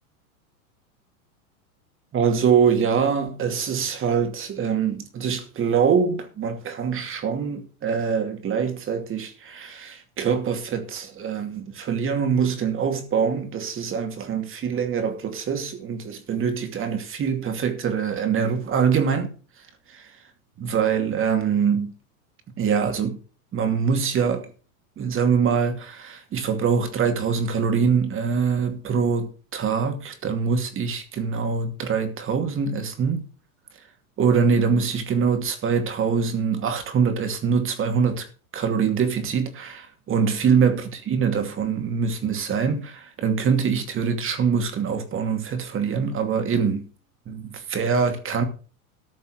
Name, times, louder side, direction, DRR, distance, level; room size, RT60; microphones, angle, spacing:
voice 1, 2.1-20.2 20.6-21.9 22.6-23.2 23.5-24.5 25.0-33.3 34.2-38.3 38.5-46.9 47.3-48.4, right 6 dB, 30° right, 2.5 m, -24 dB
14.0 x 5.4 x 6.4 m
hypercardioid pair, 110°, 44 cm